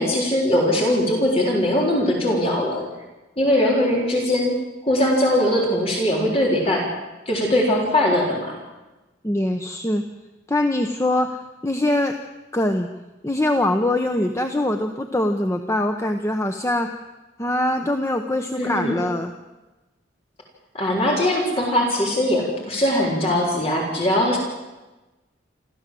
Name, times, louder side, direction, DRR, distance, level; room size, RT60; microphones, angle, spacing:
voice 1, 0.0-2.8 3.4-4.6 4.8-6.9 7.3-8.6 18.5-19.0 20.7-24.4, left 1 dB, 30° left, -2 dB, 4.0 m, -20 dB
voice 2, 9.2-10.0 10.5-12.2 12.5-12.9 13.2-16.9 17.4-19.3, left 1 dB, 15° left, 6 dB, 0.9 m, -23 dB
27.5 x 14.5 x 7.7 m, 1.1 s
head